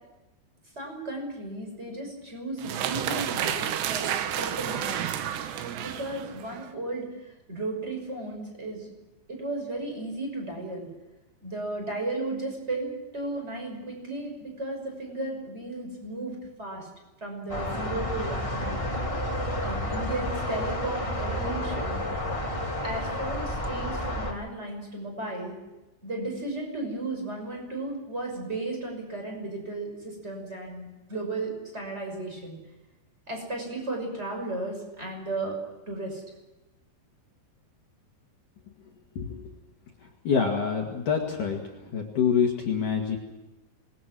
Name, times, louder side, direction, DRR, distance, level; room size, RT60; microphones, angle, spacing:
voice 1, 0.8-5.1 5.8-8.9 9.3-10.9 11.4-16.9 17.2-18.8 19.6-22.0 22.8-25.5 26.0-32.6 33.3-35.5 35.9-36.2, right 2 dB, 15° right, 1 dB, 5.9 m, -35 dB
sound 1, 2.6-6.7, right 10 dB, 75° right, 3.2 m, -31 dB
sound 2, 17.5-24.3, left 1 dB, 15° left, 1.3 m, -30 dB
voice 2, 40.2-41.6 41.9-43.2, left 6 dB, 50° left, 0 dB, 3.1 m, -26 dB
27.5 x 21.5 x 6.3 m, 1.0 s
omnidirectional pair, 5.4 m